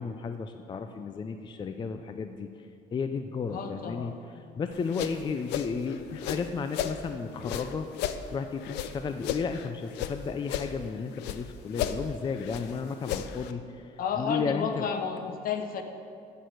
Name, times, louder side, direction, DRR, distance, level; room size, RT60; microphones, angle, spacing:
voice 1, 0.0-2.5 2.9-4.1 4.6-7.9 8.3-13.8 14.2-14.8, left 5 dB, 25° left, 7 dB, 0.4 m, -33 dB
voice 2, 3.5-4.2 14.0-15.8, left 6 dB, 60° left, 6 dB, 1.0 m, -32 dB
sound 1, 4.7-7.0 7.4-10.2 10.4-11.4 11.7-13.5, left 10 dB, 90° left, 0.5 m, -34 dB
11.0 x 4.4 x 8.1 m, 2.4 s
cardioid pair, 110°, 17 cm